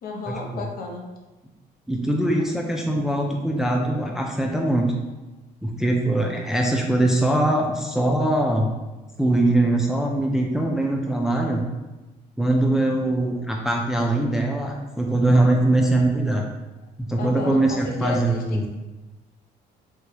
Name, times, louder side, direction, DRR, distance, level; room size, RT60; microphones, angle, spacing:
voice 1, 0.0-1.1 13.0-13.1 13.4-13.5 17.2-18.7, left 3 dB, 60° left, 0 dB, 0.6 m, -33 dB
voice 2, 1.9-4.9 5.6-8.7 9.2-11.6 12.4-16.4 17.0-18.7, right 1 dB, 5° right, 0 dB, 0.3 m, -22 dB
3.1 x 2.2 x 2.8 m, 1.1 s
cardioid pair, 110°, 17 cm